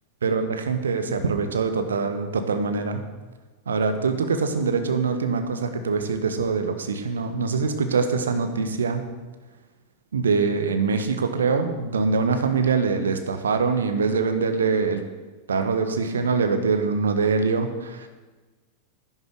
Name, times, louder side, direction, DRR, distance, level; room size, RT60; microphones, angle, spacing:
voice 1, 0.2-3.1 3.7-9.0 10.1-15.0 15.5-18.1, right 4 dB, 70° right, 8 dB, 1.3 m, -24 dB
11.0 x 9.7 x 6.4 m, 1.3 s
figure-of-eight pair, 90°, 0 cm